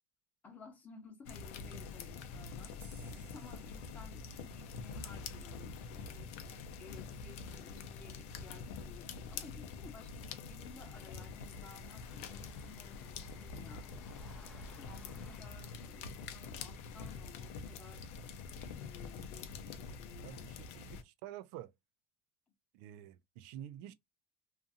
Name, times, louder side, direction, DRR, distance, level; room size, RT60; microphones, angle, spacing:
voice 1, 0.4-2.8 3.1-6.4 6.8-13.9 14.8-18.1 18.5-20.5, left 5 dB, 25° left, 0.9 m, -56 dB
sound 1, 1.3-21.0, left 5 dB, 90° left, 0.5 m, -46 dB
sound 2, 2.8-6.1, right 4 dB, 35° right, 0.9 m, -65 dB
sound 3, 8.9-19.3, equal, ahead, 0.5 m, -63 dB
voice 2, 20.2-21.7 22.7-23.9, right 11 dB, 80° right, 0.3 m, -49 dB
2.5 x 2.5 x 2.6 m
cardioid pair, 145°, 7 cm